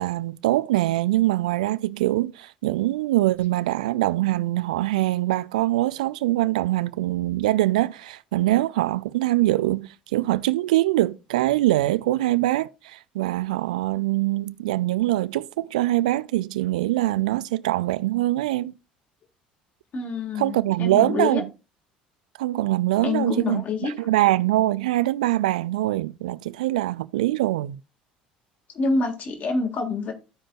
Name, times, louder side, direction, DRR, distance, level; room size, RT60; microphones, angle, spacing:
voice 1, 0.0-18.7 20.3-21.5 22.4-27.8, right 16 dB, 65° right, 0.4 m, -23 dB
voice 2, 19.9-21.4 23.0-23.9 28.8-30.1, left 3 dB, 40° left, 1.9 m, -26 dB
15.0 x 5.0 x 2.3 m
figure-of-eight pair, 60°, 4 cm